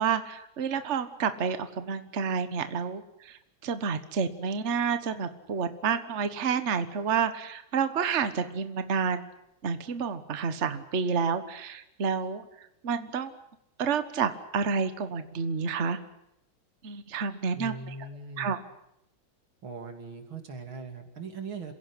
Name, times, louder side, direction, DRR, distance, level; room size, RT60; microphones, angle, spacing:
voice 1, 0.0-9.2 9.6-12.4 12.8-13.3 13.8-16.0 16.8-17.9 18.4-18.6, right 6 dB, 40° right, 10 dB, 1.5 m, -29 dB
voice 2, 17.6-18.6 19.6-21.7, right 4 dB, 85° right, 6 dB, 3.5 m, -40 dB
27.5 x 17.0 x 9.9 m, 0.80 s
omnidirectional pair, 2.2 m